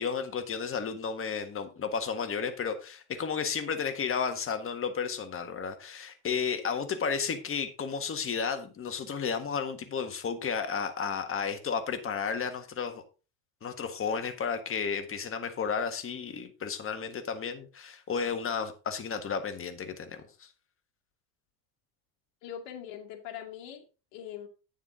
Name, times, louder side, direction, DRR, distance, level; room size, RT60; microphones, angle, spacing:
voice 1, 0.0-13.0 13.6-20.5, left 6 dB, 25° left, 1.6 m, -33 dB
voice 2, 22.4-23.9 24.1-24.5, left 9 dB, 60° left, 2.4 m, -42 dB
9.3 x 7.4 x 3.8 m
supercardioid pair, 115°, 49 cm